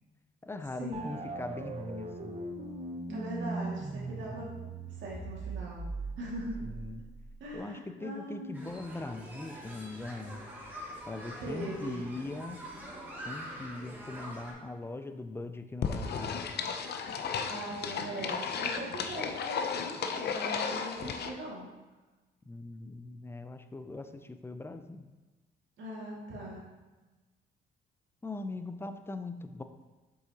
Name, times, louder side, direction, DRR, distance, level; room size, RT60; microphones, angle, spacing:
voice 1, 0.4-2.4 4.2-4.5 6.6-7.0 7.5-10.4 11.1-12.6 13.3-16.4 22.5-25.1 28.2-29.6, left 2 dB, 10° left, 9 dB, 0.5 m, -41 dB
sound 1, 0.9-7.6, right 3 dB, 30° right, 0.8 m, -40 dB
voice 2, 3.1-4.5 4.9-5.9 6.2-6.6 7.4-8.7 11.4-12.0 17.5-21.7 25.8-26.6, right 1 dB, 70° right, -5 dB, 2.2 m, -41 dB
sound 2, 8.5-14.5, equal, 10° right, 2.0 m, -45 dB
sound 3, 15.8-21.3, left 6 dB, 55° left, 0.6 m, -34 dB
7.7 x 5.6 x 2.9 m, 1.2 s
cardioid pair, 90°, 20 cm